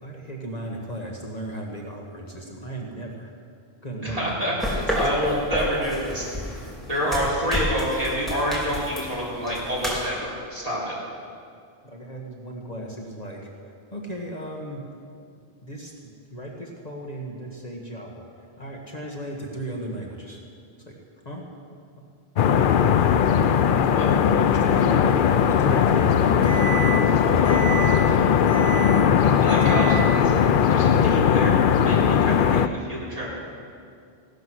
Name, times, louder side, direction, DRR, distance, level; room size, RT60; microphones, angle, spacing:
voice 1, 0.0-3.3 3.8-4.6 4.9-5.1 7.1-7.5 11.8-13.5 13.9-14.8 15.6-15.9 16.3-20.4 20.9-21.0 21.3-21.4 22.4-22.7 23.7-26.4 27.7-27.9, right 1 dB, 40° left, -1 dB, 1.6 m, -36 dB
voice 2, 4.0-6.3 6.9-10.9 24.0-24.1 25.0-25.2 27.0-28.2 29.2-33.3, equal, 35° right, -6 dB, 4.0 m, -28 dB
sound 1, 4.6-10.1, equal, ahead, 2.9 m, -30 dB
sound 2, 22.4-32.7, left 7 dB, 60° left, 0.7 m, -19 dB
Microwave oven, 24.5-27.1 27.4-28.0 28.5-29.1 29.5-30.1, right 3 dB, 85° right, 4.1 m, -32 dB
16.5 x 12.0 x 6.3 m, 2.3 s
omnidirectional pair, 1.1 m